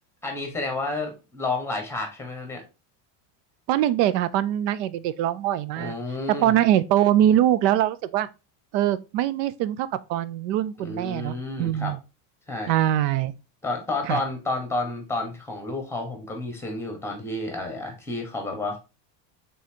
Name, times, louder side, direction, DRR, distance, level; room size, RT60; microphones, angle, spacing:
voice 1, 0.2-2.6 5.8-6.5 10.8-11.9 12.5-12.7 13.6-18.8, left 2 dB, 5° left, 1.2 m, -30 dB
voice 2, 3.7-6.0 6.3-8.3 8.7-12.0 12.7-13.3 14.1-14.2, right 12 dB, 75° right, 0.6 m, -23 dB
4.2 x 3.8 x 2.8 m
supercardioid pair, 140°, 49 cm